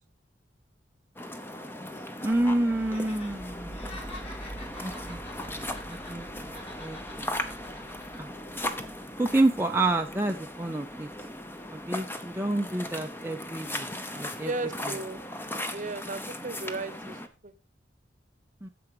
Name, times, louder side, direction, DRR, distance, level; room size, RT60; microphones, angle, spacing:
sound 1, 1.2-17.3, left 1 dB, 10° left, 0.8 m, -38 dB
voice 1, 2.2-3.8 4.8-6.5 6.8-7.3 8.2-8.3 9.2-11.1 11.7-13.9 14.1-14.5 14.8-14.9 18.6-18.7, right 2 dB, 10° right, 3 dB, 0.5 m, -29 dB
sound 2, 2.3-13.0, right 1 dB, 55° left, 5.2 m, -48 dB
Laughter, 2.8-3.3 3.6-6.3 6.5-8.2 8.5-8.7, left 1 dB, 35° left, 4.3 m, -47 dB
voice 2, 14.4-15.2 15.7-17.2 17.4-17.5, right 2 dB, 45° right, 13 dB, 0.9 m, -35 dB
9.7 x 7.0 x 4.8 m, 0.32 s
head